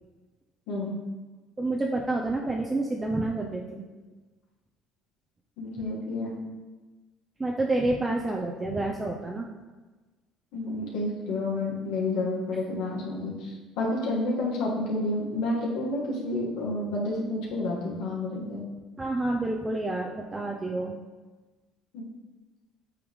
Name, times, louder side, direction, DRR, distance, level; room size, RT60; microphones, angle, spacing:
voice 1, 0.7-1.0 5.6-6.4 10.5-18.6 21.9-22.0, left 2 dB, 80° left, -4 dB, 1.7 m, -30 dB
voice 2, 1.6-3.8 7.4-9.5 19.0-21.0, right 2 dB, 15° right, 0 dB, 0.5 m, -29 dB
8.4 x 3.6 x 3.2 m, 1.2 s
cardioid pair, 110°, 0 cm